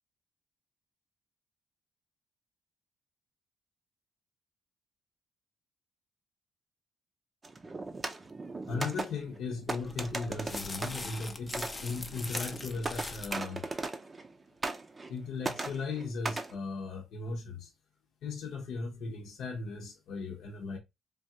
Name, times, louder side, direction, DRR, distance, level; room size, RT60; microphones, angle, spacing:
sound 1, 7.4-14.3 14.6-15.2 15.4-16.5, right 3 dB, 30° right, 0.5 m, -38 dB
voice 1, 8.7-13.6 15.1-17.7 18.2-20.8, left 4 dB, 75° left, 0.7 m, -37 dB
sound 2, 9.8-13.4, left 2 dB, 20° left, 0.5 m, -42 dB
3.4 x 2.3 x 2.7 m
cardioid pair, 90°, 0 cm